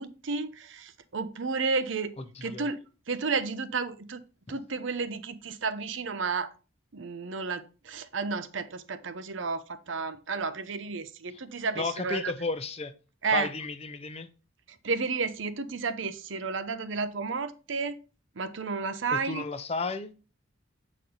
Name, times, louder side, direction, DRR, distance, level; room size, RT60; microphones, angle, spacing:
voice 1, 0.0-2.1 2.4-2.8 3.1-4.2 4.5-6.5 6.9-12.3 13.2-13.5 14.8-18.0 18.4-19.5, right 4 dB, 65° right, 0.7 m, -32 dB
voice 2, 2.3-2.7 4.5-4.6 11.8-12.9 13.3-14.3 19.1-20.1, left 4 dB, 30° left, 0.6 m, -33 dB
8.0 x 4.3 x 3.8 m
head